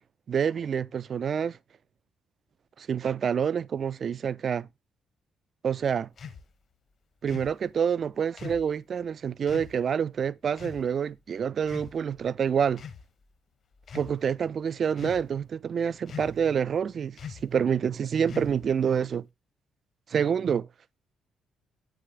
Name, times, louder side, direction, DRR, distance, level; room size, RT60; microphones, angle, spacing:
voice 1, 0.3-1.6 2.8-4.7 5.6-6.1 7.2-12.8 13.9-19.3 20.1-20.7, right 7 dB, 55° right, 0.4 m, -27 dB
sound 1, 6.2-6.4 7.3-7.6 8.4-8.7 9.5-9.7 10.6-10.9 11.6-12.2 12.7-13.1 13.8-14.1 15.0-15.4 16.1-16.5 17.2-17.5 18.3-18.7, left 7 dB, 55° left, 1.3 m, -41 dB
8.1 x 7.0 x 3.6 m
hypercardioid pair, 45°, 0 cm